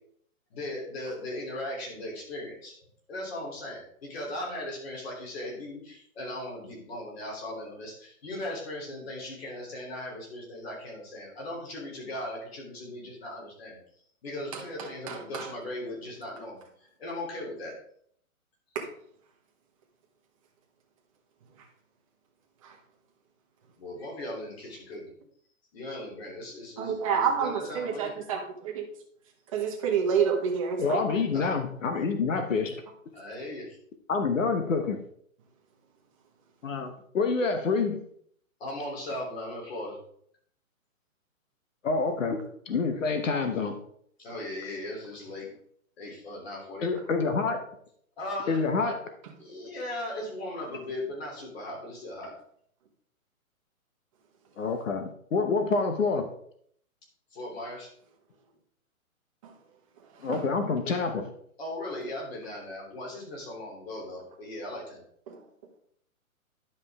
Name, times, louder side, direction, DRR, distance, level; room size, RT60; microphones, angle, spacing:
voice 1, 0.5-13.8 14.2-16.6 17.0-17.7 23.8-25.1 25.7-28.3 31.3-31.5 33.1-33.8 38.6-40.0 44.2-45.5 46.0-46.9 48.2-48.6 49.4-52.3 57.3-57.9 61.6-65.0, left 1 dB, 45° left, -2 dB, 3.2 m, -38 dB
voice 2, 14.5-15.5 18.7-18.9 22.6-22.7 26.8-28.9 29.5-31.0 59.4-59.5 60.3-60.4 65.3-65.4, right 7 dB, 25° right, 0 dB, 1.2 m, -29 dB
voice 3, 30.8-32.7 34.1-35.0 36.6-38.0 41.8-42.4 42.7-43.8 46.8-47.6 48.5-49.0 54.6-56.3 60.2-61.2, left 4 dB, 60° left, 7 dB, 1.1 m, -27 dB
10.5 x 5.6 x 3.5 m, 0.65 s
hypercardioid pair, 165°, 43 cm